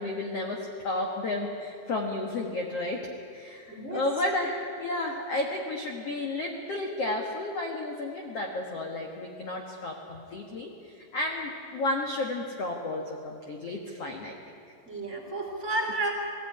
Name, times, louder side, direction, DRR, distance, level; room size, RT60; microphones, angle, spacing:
voice 1, 0.0-14.3, left 2 dB, 90° left, 1 dB, 1.3 m, -32 dB
voice 2, 3.7-4.0 14.9-16.3, right 2 dB, 25° right, -1 dB, 1.9 m, -31 dB
19.5 x 15.5 x 9.8 m, 2.5 s
omnidirectional pair, 5.2 m